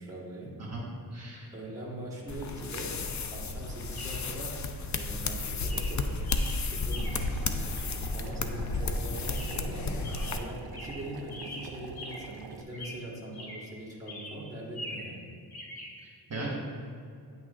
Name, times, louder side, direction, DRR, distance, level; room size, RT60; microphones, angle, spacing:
voice 1, 0.0-0.6 1.5-3.0 3.3-4.6 4.9-6.2 6.6-15.3, right 1 dB, 10° right, -5 dB, 1.5 m, -42 dB
voice 2, 0.6-1.5 16.0-16.5, right 2 dB, 40° right, -5 dB, 1.3 m, -38 dB
Chirp tweet, 1.2-1.3 3.9-4.4 5.1-5.3 5.7-7.4 9.3-9.8 10.0-12.4 12.7-13.8 14.1-15.2 15.5-15.9, left 1 dB, 65° left, 1.4 m, -43 dB
sound 1, 2.3-10.4, left 3 dB, 45° left, 0.5 m, -33 dB
Boiling, 6.9-12.6, right 6 dB, 65° right, 0.5 m, -46 dB
9.1 x 6.1 x 2.5 m, 2.4 s
wide cardioid pair, 100°, 41 cm